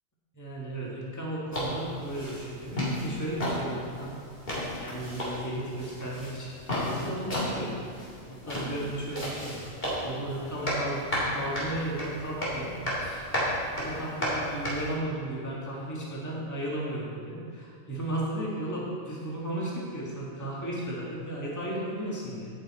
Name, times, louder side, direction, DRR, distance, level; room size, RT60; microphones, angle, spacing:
voice 1, 0.3-4.1 4.8-8.0 8.3-9.6 10.0-12.7 13.0-13.3 13.7-22.5, right 1 dB, 15° left, -5 dB, 1.8 m, -34 dB
sound 1, 1.5-14.9, equal, 45° left, 3.1 m, -34 dB
12.0 x 8.7 x 4.3 m, 2.2 s
omnidirectional pair, 1.4 m